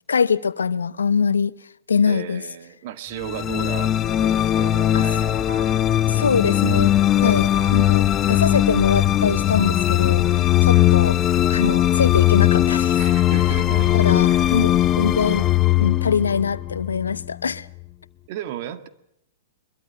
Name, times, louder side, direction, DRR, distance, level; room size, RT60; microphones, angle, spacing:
voice 1, 0.1-1.5 1.9-2.4 4.9-5.1 6.1-11.2 11.5-13.0 13.9-15.5 15.8-17.7, left 6 dB, 85° left, 0.9 m, -23 dB
voice 2, 2.0-5.4 7.1-7.5 8.5-8.6 10.7-11.0 13.0-14.6 18.3-18.9, right 11 dB, 50° right, 2.0 m, -35 dB
sound 1, 3.2-17.5, left 13 dB, 30° left, 0.9 m, -19 dB
sound 2, 5.5-6.0 7.5-8.0 9.6-10.1 11.6-12.1 13.7-14.2, right 5 dB, 90° right, 1.6 m, -40 dB
23.5 x 22.0 x 6.7 m
hypercardioid pair, 115°, 0 cm